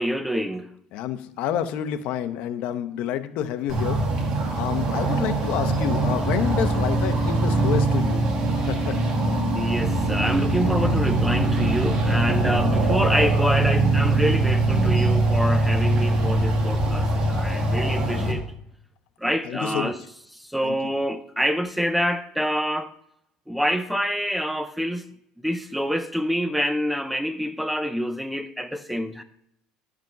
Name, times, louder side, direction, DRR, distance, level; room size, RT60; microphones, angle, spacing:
voice 1, 0.0-0.7 9.5-18.4 19.2-20.0 20.4-22.9 23.5-25.1 25.4-29.2, equal, 5° right, 0.5 m, -26 dB
voice 2, 0.9-4.0 4.5-8.2 8.5-9.0 19.4-19.9 20.6-20.9, left 10 dB, 60° left, 0.8 m, -28 dB
sound 1, 3.7-18.3, right 2 dB, 35° right, 2.2 m, -22 dB
12.0 x 5.0 x 6.5 m
cardioid pair, 150°, 3 cm